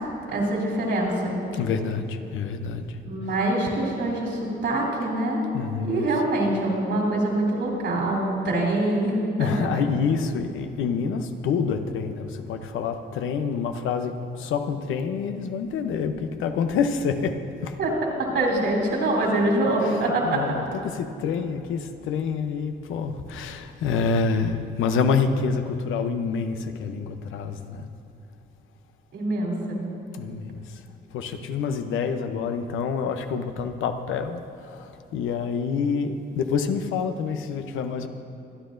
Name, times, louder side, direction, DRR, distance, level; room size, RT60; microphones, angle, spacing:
voice 1, 0.3-1.3 3.0-5.4 5.8-9.7 17.8-17.9 18.2-20.4 29.1-29.8, right 1 dB, 65° right, -2 dB, 3.3 m, -24 dB
voice 2, 1.5-3.0 3.3-3.4 5.5-6.2 9.4-17.8 19.8-27.9 30.1-30.8 31.1-38.1, left 5 dB, 85° left, 7 dB, 0.8 m, -27 dB
24.0 x 9.7 x 2.6 m, 2.7 s
cardioid pair, 90°, 20 cm